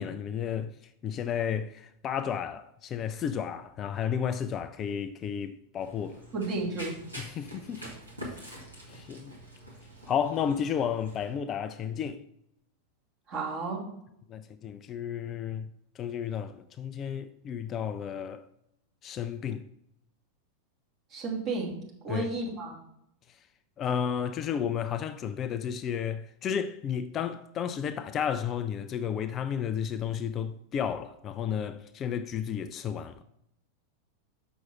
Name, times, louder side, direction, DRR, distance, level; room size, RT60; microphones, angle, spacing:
voice 1, 0.0-6.2 7.2-7.9 8.2-8.6 8.9-9.3 10.1-12.2 14.3-15.7 16.0-18.4 19.0-19.6 22.1-22.3 23.3-23.4 23.8-33.2, left 8 dB, 30° left, 0.4 m, -32 dB
Run, 5.8-11.3, equal, 80° right, 2.1 m, -45 dB
voice 2, 6.3-7.0 13.3-13.8 21.1-21.8 22.0-22.8, right 3 dB, 35° right, 2.6 m, -32 dB
7.0 x 6.2 x 4.6 m
figure-of-eight pair, 90°, 0 cm